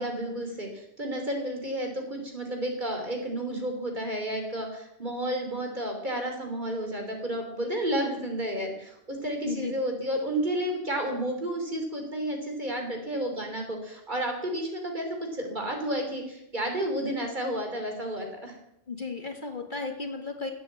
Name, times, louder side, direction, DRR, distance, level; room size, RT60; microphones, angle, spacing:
voice 1, 0.0-18.6, right 1 dB, 40° right, 3 dB, 3.4 m, -31 dB
voice 2, 18.9-20.5, left 4 dB, 40° left, 4 dB, 1.9 m, -34 dB
17.0 x 8.7 x 8.1 m, 0.83 s
omnidirectional pair, 1.3 m